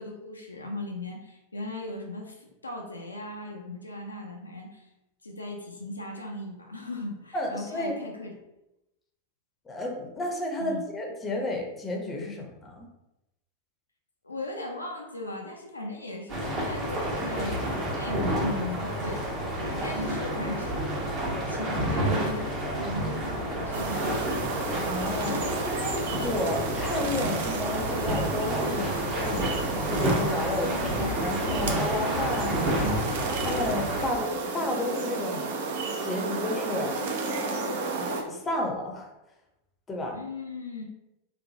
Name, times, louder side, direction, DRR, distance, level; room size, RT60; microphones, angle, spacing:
voice 1, 0.0-4.9 5.2-8.3 10.6-10.8 14.2-19.2 19.7-20.8 21.5-24.3 30.6-31.0 40.1-40.8, left 2 dB, 80° left, 1 dB, 0.4 m, -38 dB
voice 2, 7.3-7.9 9.7-12.9 24.7-29.6 29.9-30.8 31.1-35.5 36.0-37.0 38.0-39.1 39.9-40.2, left 2 dB, 15° left, 1 dB, 0.6 m, -32 dB
sound 1, 16.3-34.1, right 1 dB, 35° right, 0.8 m, -30 dB
sound 2, 23.7-38.2, right 3 dB, 55° right, 0.4 m, -33 dB
2.9 x 2.1 x 2.6 m, 0.91 s
figure-of-eight pair, 90°, 0 cm